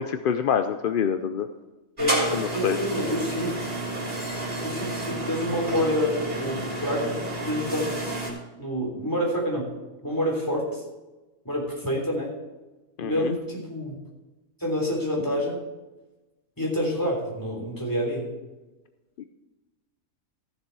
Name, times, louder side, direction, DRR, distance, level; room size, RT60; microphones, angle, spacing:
voice 1, 0.0-1.5 2.3-2.8 13.0-13.3 19.2-19.3, left 7 dB, 60° left, 8 dB, 0.5 m, -26 dB
voice 2, 2.0-3.6 4.6-8.1 8.6-9.7 10.0-10.8 11.5-12.3 13.0-14.0 14.6-15.6 16.6-18.3, equal, 15° left, -2 dB, 3.5 m, -27 dB
sound 1, 2.0-8.3, right 1 dB, 35° right, 3.7 m, -31 dB
15.0 x 7.0 x 4.7 m, 1.1 s
omnidirectional pair, 1.4 m